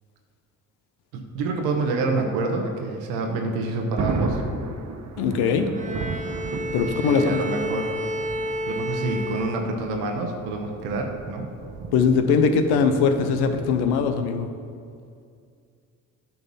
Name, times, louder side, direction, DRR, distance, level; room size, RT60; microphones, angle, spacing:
voice 1, 1.1-4.4 7.0-7.9 8.7-11.5, right 3 dB, 85° right, 3 dB, 1.0 m, -27 dB
Thunder, 3.4-14.1, right 4 dB, 45° right, 1.0 m, -35 dB
voice 2, 5.2-5.7 6.7-7.4 11.9-14.5, left 5 dB, 80° left, 8 dB, 0.8 m, -21 dB
Bowed string instrument, 5.7-10.2, equal, 20° right, 0.7 m, -31 dB
9.5 x 4.6 x 5.6 m, 2.3 s
supercardioid pair, 55°, 39 cm